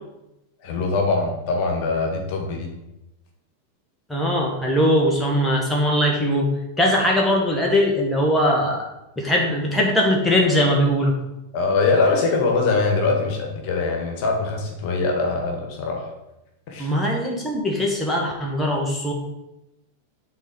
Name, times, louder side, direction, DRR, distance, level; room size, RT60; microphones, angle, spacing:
voice 1, 0.6-2.7 11.5-16.1 16.7-16.9, left 3 dB, 45° left, 2 dB, 1.8 m, -22 dB
voice 2, 4.1-6.5 6.8-8.8 9.2-11.2 16.8-19.1, equal, 5° left, -1 dB, 1.6 m, -20 dB
9.3 x 4.0 x 5.3 m, 0.92 s
figure-of-eight pair, 90°, 0 cm